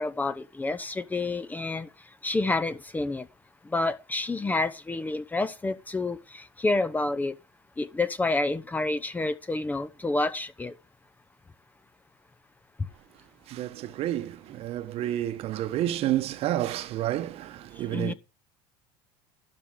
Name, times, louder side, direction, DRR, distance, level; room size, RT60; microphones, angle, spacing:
voice 1, 0.0-1.9 2.2-3.3 3.7-7.3 7.8-10.7 17.9-18.1, left 2 dB, 15° left, 0.7 m, -29 dB
voice 2, 13.5-18.1, right 13 dB, 55° right, 1.1 m, -30 dB
12.0 x 4.8 x 8.1 m
supercardioid pair, 115°, 12 cm